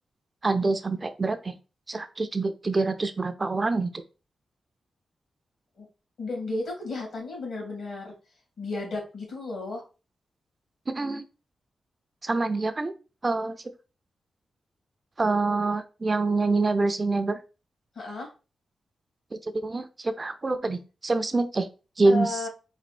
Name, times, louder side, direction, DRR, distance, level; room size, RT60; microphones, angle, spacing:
voice 1, 0.4-1.5 1.9-3.9 10.9-11.2 12.2-12.9 13.2-13.6 15.2-17.4 19.4-21.7 22.0-22.4, right 3 dB, 30° right, 9 dB, 0.5 m, -26 dB
voice 2, 6.2-8.1 8.6-9.8 17.9-18.3 22.1-22.5, left 2 dB, 70° left, 0 dB, 2.4 m, -33 dB
4.3 x 2.6 x 4.2 m, 0.33 s
cardioid pair, 95°, 0 cm